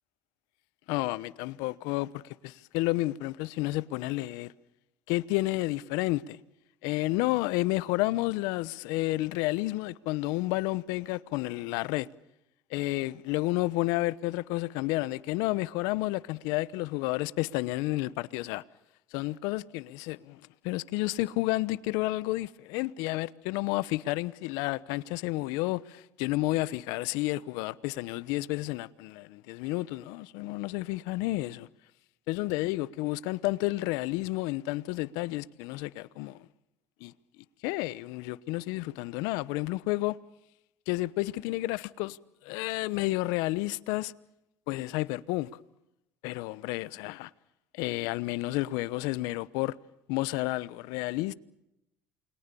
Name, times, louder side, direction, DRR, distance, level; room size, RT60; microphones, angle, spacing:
voice 1, 0.9-4.5 5.1-6.4 6.8-12.0 12.7-18.6 19.1-31.7 32.3-36.4 37.0-37.1 37.6-40.2 40.9-42.2 42.4-44.1 44.7-45.5 46.2-47.3 47.7-49.7 50.1-51.3, left 19 dB, 75° left, 1.0 m, -31 dB
29.0 x 22.0 x 7.0 m
supercardioid pair, 90°, 6 cm